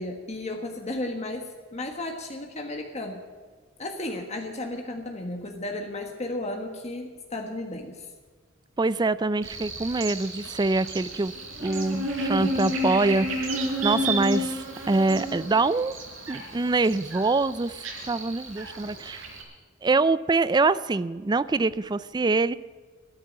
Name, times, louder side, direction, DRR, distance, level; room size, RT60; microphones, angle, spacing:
voice 1, 0.0-3.2 3.8-8.1, left 2 dB, 35° left, 3 dB, 1.5 m, -34 dB
voice 2, 8.8-11.3 11.6-15.9 16.3-19.2 19.8-22.5, right 3 dB, 20° right, 17 dB, 0.4 m, -25 dB
Buzz, 9.4-19.4, right 1 dB, 85° right, 4.5 m, -32 dB
14.0 x 13.0 x 7.5 m, 1.5 s
head